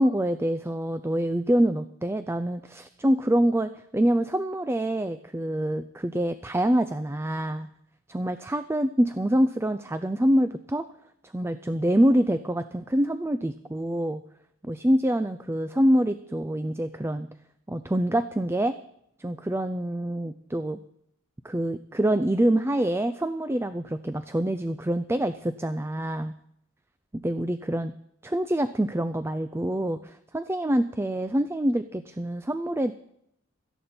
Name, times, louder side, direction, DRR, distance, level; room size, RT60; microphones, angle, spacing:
voice 1, 0.0-7.7 8.1-10.9 11.3-14.2 14.7-17.3 17.7-18.8 19.2-20.8 21.4-26.3 27.1-27.9 28.2-32.9, right 1 dB, 10° right, 11 dB, 0.4 m, -25 dB
17.0 x 13.5 x 4.3 m, 0.73 s
head